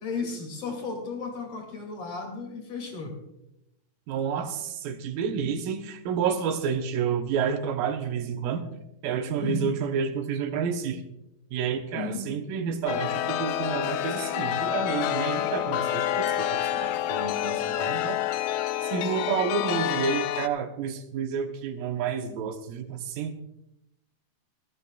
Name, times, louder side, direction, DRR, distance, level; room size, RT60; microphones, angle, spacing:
voice 1, 0.0-3.2 9.4-9.7 11.9-12.3, left 4 dB, 45° left, 1 dB, 3.4 m, -34 dB
voice 2, 4.1-8.7 9.0-11.0 11.5-18.4 18.8-23.4, right 7 dB, 80° right, 6 dB, 2.7 m, -30 dB
Chime, 12.9-20.5, left 12 dB, 80° left, 1.9 m, -28 dB
19.5 x 14.0 x 2.4 m, 0.86 s
omnidirectional pair, 4.1 m